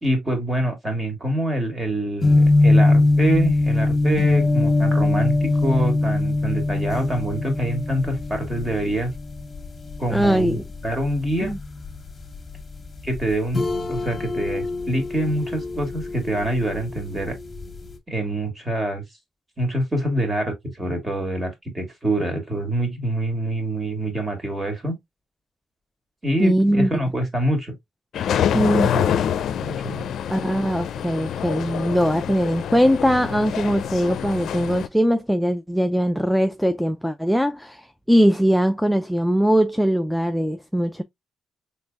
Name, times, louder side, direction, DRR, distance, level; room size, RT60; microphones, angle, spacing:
voice 1, 0.0-9.1 10.0-11.5 13.0-13.6 13.9-17.4 18.1-19.0 19.6-24.9 26.2-27.7 28.3-29.1 29.6-30.1, right 1 dB, 20° right, 2.1 m, -25 dB
sound 1, 2.2-17.9, left 2 dB, 25° left, 1.5 m, -22 dB
voice 2, 10.1-10.6 11.4-11.6 26.4-26.9 28.5-28.9 30.3-41.0, equal, ahead, 0.4 m, -21 dB
sound 2, 28.1-34.9, left 9 dB, 70° left, 0.5 m, -26 dB
4.3 x 3.4 x 2.4 m
cardioid pair, 90°, 0 cm